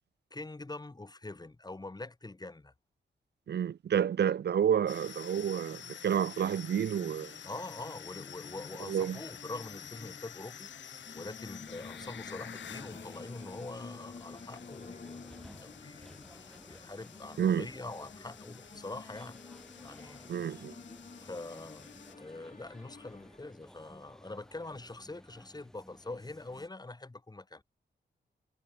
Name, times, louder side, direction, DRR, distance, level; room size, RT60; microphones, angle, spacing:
voice 1, 0.3-2.7 7.4-10.7 11.1-15.3 15.6-19.4 19.8-20.6 21.2-21.9 22.2-27.6, left 2 dB, 20° left, 2.2 m, -44 dB
voice 2, 3.5-7.3 8.9-9.2 17.4-17.7 20.3-20.7, right 8 dB, 60° right, 0.6 m, -29 dB
sound 1, 4.9-22.1, left 9 dB, 70° left, 0.8 m, -50 dB
sound 2, 5.1-23.8, left 4 dB, 40° left, 4.3 m, -52 dB
sound 3, 11.6-26.7, equal, 5° left, 2.5 m, -55 dB
cardioid pair, 85°, 20 cm